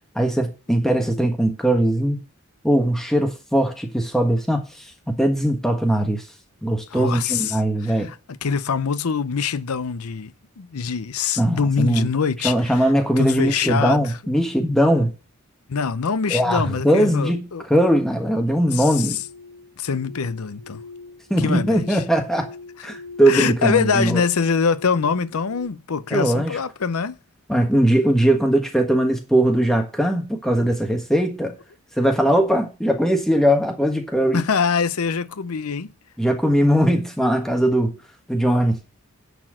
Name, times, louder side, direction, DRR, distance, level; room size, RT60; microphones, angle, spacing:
voice 1, 0.1-2.2 2.6-4.6 5.1-6.2 6.6-8.1 11.4-12.1 12.4-15.1 16.3-19.2 21.3-22.5 22.8-24.2 26.1-26.6 27.5-31.6 32.0-34.4 36.2-37.9 38.3-38.8, right 1 dB, ahead, 1.4 m, -20 dB
voice 2, 6.9-12.9 13.2-14.2 15.7-17.7 18.7-19.2 19.8-20.8 21.4-22.0 22.8-22.9 23.3-27.2 34.3-35.9, left 6 dB, 80° left, 0.7 m, -24 dB
sound 1, 19.0-25.7, left 3 dB, 80° right, 3.3 m, -43 dB
10.0 x 4.4 x 7.5 m
head